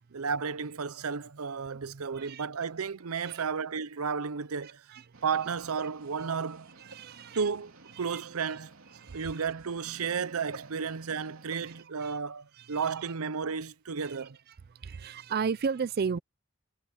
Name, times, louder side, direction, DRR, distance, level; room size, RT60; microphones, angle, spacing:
voice 1, 0.1-4.8 5.2-6.7 7.3-7.7 8.0-8.7 9.1-14.4, right 6 dB, 85° right, 0.7 m, -33 dB
sound 1, 5.1-11.8, right 2 dB, 70° right, 3.5 m, -52 dB
voice 2, 6.8-7.4 8.1-8.2 9.0-9.3 11.6-12.2 12.6-12.7 14.0-14.2 14.8-16.2, right 5 dB, 45° right, 0.4 m, -34 dB
head